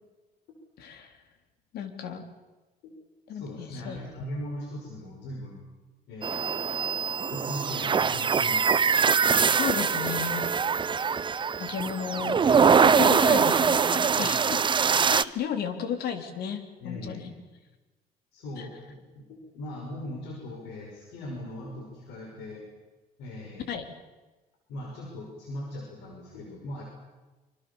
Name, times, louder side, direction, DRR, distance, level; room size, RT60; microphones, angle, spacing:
voice 1, 0.8-1.2 1.7-2.3 3.3-4.0 9.6-10.5 11.6-12.5 12.8-14.6 15.1-17.3 18.6-18.7 23.7-23.8, left 8 dB, 70° left, 7 dB, 3.7 m, -33 dB
voice 2, 3.3-5.6 6.1-6.5 7.3-9.0 14.2-14.6 16.8-17.2 18.3-22.7 23.2-23.7 24.7-26.8, left 1 dB, 90° left, 0 dB, 5.9 m, -39 dB
sound 1, 6.2-15.2, right 6 dB, 30° right, 0.8 m, -23 dB
26.5 x 25.0 x 7.1 m, 1.2 s
cardioid pair, 110°, 17 cm